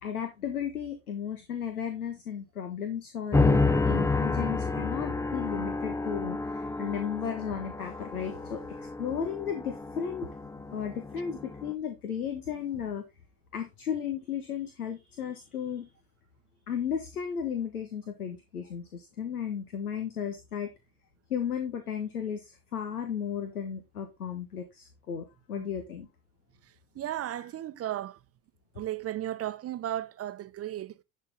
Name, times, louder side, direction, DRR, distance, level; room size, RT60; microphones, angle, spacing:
voice 1, 0.0-13.0 13.5-15.9 16.7-20.7 21.3-26.1, left 8 dB, 80° left, 1.5 m, -34 dB
sound 1, 3.3-11.7, left 3 dB, 5° left, 0.6 m, -30 dB
voice 2, 26.9-28.2 28.8-31.0, right 12 dB, 35° right, 0.9 m, -35 dB
11.0 x 6.4 x 3.7 m
figure-of-eight pair, 65°, 44 cm